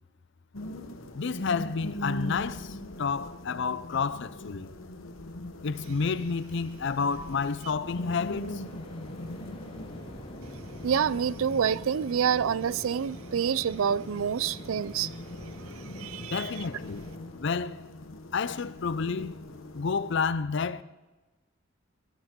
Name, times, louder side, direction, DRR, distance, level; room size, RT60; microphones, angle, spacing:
sound 1, 0.5-20.3, left 1 dB, 75° left, 1.0 m, -42 dB
voice 1, 1.1-4.7 5.6-8.6 16.2-17.0 17.4-17.8 18.3-19.4 19.7-20.8, left 5 dB, 60° left, 0.5 m, -30 dB
Waves surf, 7.8-17.5, equal, 25° left, 2.1 m, -45 dB
voice 2, 10.8-15.1 16.0-16.5, right 7 dB, 85° right, 0.4 m, -27 dB
16.0 x 12.0 x 3.7 m
head